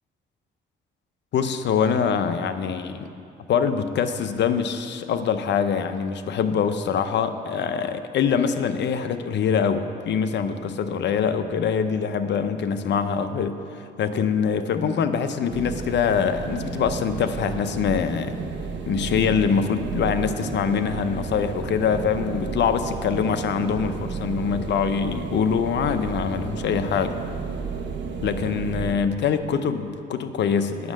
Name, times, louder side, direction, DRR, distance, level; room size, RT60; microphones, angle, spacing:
voice 1, 1.3-3.1 3.5-18.4 18.9-27.1 28.2-30.9, left 6 dB, 60° left, 9 dB, 0.7 m, -24 dB
sound 1, 15.5-29.0, right 5 dB, 65° right, 1.0 m, -32 dB
9.4 x 6.2 x 7.5 m, 2.6 s
cardioid pair, 90°, 20 cm